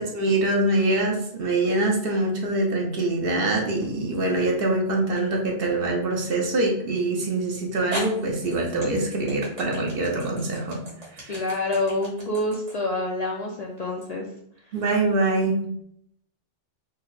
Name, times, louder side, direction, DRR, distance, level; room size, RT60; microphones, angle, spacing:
voice 1, 0.0-10.8 11.1-11.3 14.7-15.6, right 2 dB, 60° right, 0 dB, 0.9 m, -24 dB
sound 1, 3.8-4.4 5.2-5.3 7.2-7.3 7.9-14.1, right 2 dB, 80° right, 1.7 m, -38 dB
voice 2, 11.3-14.3, left 2 dB, 50° left, -2 dB, 0.5 m, -27 dB
3.9 x 2.1 x 4.0 m, 0.69 s
omnidirectional pair, 1.2 m